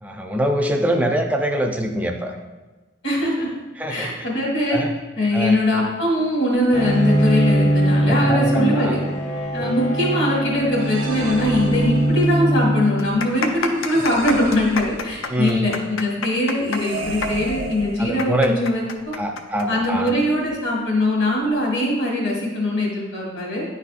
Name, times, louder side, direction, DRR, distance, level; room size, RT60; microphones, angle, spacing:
voice 1, 0.0-2.4 3.8-4.3 4.7-4.9 5.3-5.6 8.0-9.1 9.6-9.8 15.3-15.7 18.0-18.6 19.2-20.1, right 1 dB, 10° right, 3 dB, 0.4 m, -24 dB
voice 2, 3.0-3.5 3.9-4.8 5.2-9.0 9.5-19.1 19.7-23.6, left 1 dB, 60° left, -3 dB, 2.0 m, -21 dB
Bowed string instrument, 6.7-13.4, right 1 dB, 30° left, 0.8 m, -21 dB
sound 1, 10.8-12.5 13.8-15.4 16.6-18.5, right 2 dB, 85° right, 0.8 m, -33 dB
sound 2, 11.8-11.9 12.1-12.2 12.9-20.1 20.4-20.5 21.3-21.5, left 5 dB, 85° left, 0.5 m, -29 dB
9.7 x 4.1 x 2.5 m, 1.2 s
head